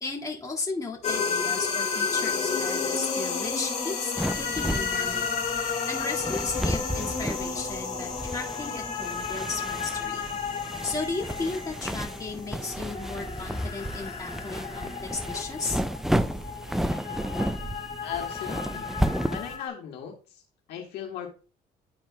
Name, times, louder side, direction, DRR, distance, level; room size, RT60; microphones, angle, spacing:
voice 1, 0.0-5.3 5.9-10.2 10.8-15.8, left 3 dB, 20° left, -2 dB, 1.9 m, -35 dB
sound 1, 1.0-19.7, left 5 dB, 40° left, 2.2 m, -32 dB
sound 2, 4.2-19.6, right 1 dB, ahead, 0.4 m, -32 dB
voice 2, 18.0-18.9 19.3-20.4 20.7-21.3, left 8 dB, 75° left, 1 dB, 1.8 m, -37 dB
11.5 x 4.4 x 2.2 m, 0.33 s
cardioid pair, 110°, 17 cm